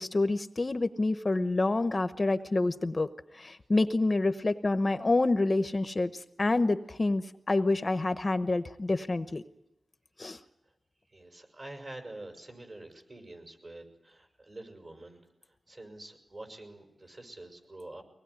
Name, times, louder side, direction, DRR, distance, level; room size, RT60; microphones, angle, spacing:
voice 1, 0.0-3.1 3.3-6.1 6.4-9.4 10.2-10.4, left 2 dB, 35° left, 9 dB, 0.9 m, -27 dB
voice 2, 11.1-18.0, right 2 dB, 40° right, 4 dB, 5.8 m, -47 dB
24.5 x 19.0 x 9.7 m, 0.88 s
wide cardioid pair, 120°, 0 cm